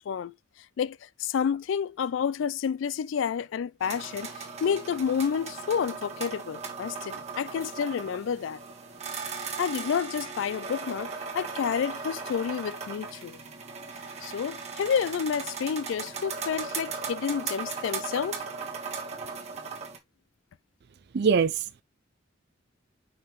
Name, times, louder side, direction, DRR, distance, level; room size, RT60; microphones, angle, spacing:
voice 1, 0.0-8.6 9.6-13.4 14.2-18.4, left 7 dB, 70° left, 0.3 m, -30 dB
sound 1, 3.8-20.0, right 5 dB, 35° right, 1.7 m, -37 dB
voice 2, 21.1-21.8, right 6 dB, 55° right, 0.4 m, -23 dB
5.5 x 5.4 x 3.1 m
head